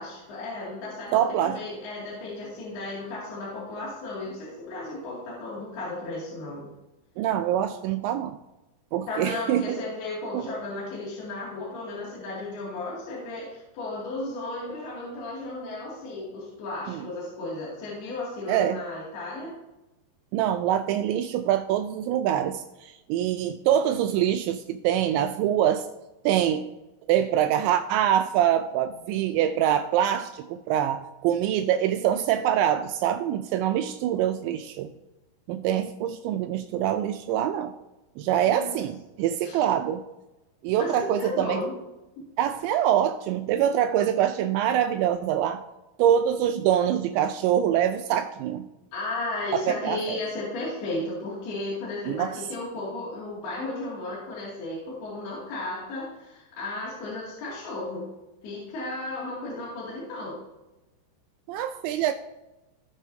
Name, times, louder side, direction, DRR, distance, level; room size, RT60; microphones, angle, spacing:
voice 1, 0.0-6.7 9.1-19.5 38.4-38.8 39.4-39.6 40.8-41.7 42.2-42.3 48.9-58.1 58.4-60.4, left 2 dB, 60° left, -7 dB, 4.0 m, -34 dB
voice 2, 1.1-1.6 7.2-8.4 8.9-9.8 10.3-10.4 16.9-17.1 18.5-18.8 20.3-25.9 26.3-26.7 27.1-34.9 35.5-37.7 38.2-40.0 40.6-41.6 42.4-45.6 46.0-48.7 49.5-50.2 52.1-52.3 61.5-62.1, right 10 dB, 85° right, 7 dB, 2.6 m, -24 dB
18.0 x 6.1 x 2.7 m, 1.0 s
omnidirectional pair, 5.5 m